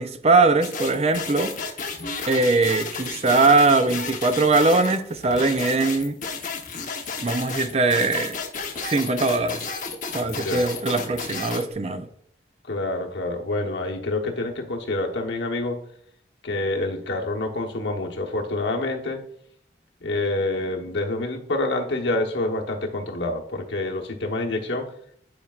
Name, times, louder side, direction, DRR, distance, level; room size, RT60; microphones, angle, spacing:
voice 1, 0.0-1.5 2.3-6.1 7.2-8.3 8.8-9.6 10.1-12.0, right 3 dB, 35° right, 0.5 m, -21 dB
sound 1, 0.6-11.7, left 5 dB, 45° left, 1.0 m, -32 dB
voice 2, 10.3-10.7 12.6-15.8 16.4-19.2 20.0-24.9, left 2 dB, 80° left, 1.1 m, -27 dB
10.0 x 4.7 x 2.4 m
head